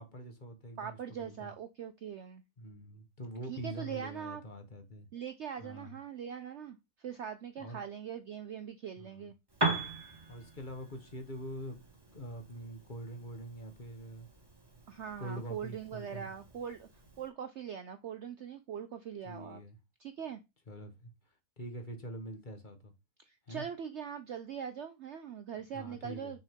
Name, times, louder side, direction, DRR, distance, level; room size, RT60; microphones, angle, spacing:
voice 1, 0.0-1.5 2.6-5.1 5.6-5.9 7.6-7.8 9.0-9.3 10.3-11.8 12.1-14.3 15.2-16.3 19.2-19.8 20.7-21.1 21.6-22.9 23.5-23.6 25.7-26.3, right 1 dB, 30° left, 1.3 m, -44 dB
voice 2, 0.8-2.4 3.5-4.4 5.1-9.3 14.9-16.9 17.2-19.6 20.0-20.4 23.2-26.4, right 8 dB, 65° right, 0.7 m, -42 dB
Piano, 9.5-17.3, right 2 dB, 15° right, 1.3 m, -40 dB
6.3 x 4.6 x 3.6 m
omnidirectional pair, 1.7 m